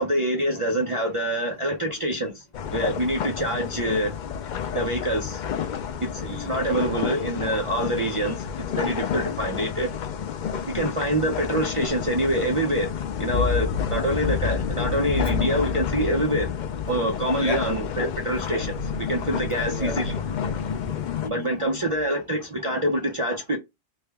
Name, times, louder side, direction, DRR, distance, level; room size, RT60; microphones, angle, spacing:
voice 1, 0.0-2.4 2.7-4.1 4.7-5.4 6.0-9.9 10.7-12.9 13.2-16.5 16.9-20.1 21.3-23.6, right 1 dB, 40° right, 0.5 m, -26 dB
sound 1, 2.5-21.3, left 7 dB, 60° left, 0.5 m, -29 dB
voice 2, 6.2-6.6 8.2-8.3 10.4-10.5 11.9-12.3 15.2-15.3 17.4-18.0 18.3-21.9, left 3 dB, 35° left, 0.9 m, -36 dB
3.3 x 2.1 x 3.3 m
omnidirectional pair, 1.2 m